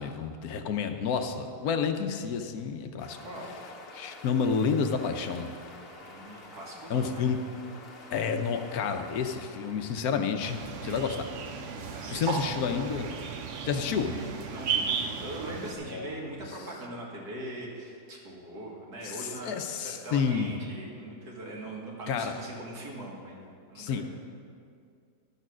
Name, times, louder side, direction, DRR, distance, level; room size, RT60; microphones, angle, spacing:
voice 1, 0.0-3.2 3.9-5.5 6.9-7.4 8.1-11.3 12.1-13.1 13.7-14.1 15.9-16.1 19.0-20.5 22.1-22.3 23.8-24.0, left 6 dB, 75° left, 7 dB, 1.2 m, -30 dB
sound 1, 3.0-11.4, left 2 dB, 45° left, 1.2 m, -49 dB
voice 2, 3.2-3.5 6.0-7.3 11.9-13.0 13.9-24.0, right 1 dB, 80° right, -3 dB, 2.4 m, -41 dB
sound 2, 10.4-15.7, right 6 dB, 60° right, 0.9 m, -34 dB
12.0 x 6.7 x 6.1 m, 2.3 s
omnidirectional pair, 1.6 m